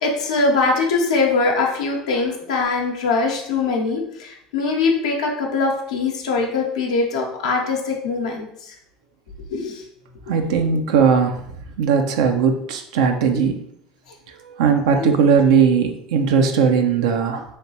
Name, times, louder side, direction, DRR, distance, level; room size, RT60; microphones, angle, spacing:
voice 1, 0.0-8.7 9.5-9.8 10.3-10.4 15.0-15.1, left 3 dB, 90° left, -1 dB, 0.6 m, -22 dB
voice 2, 10.3-11.4 11.8-13.6 14.4-17.4, right 6 dB, 80° right, 5 dB, 0.4 m, -18 dB
3.2 x 2.9 x 2.8 m, 0.73 s
hypercardioid pair, 80°, 3 cm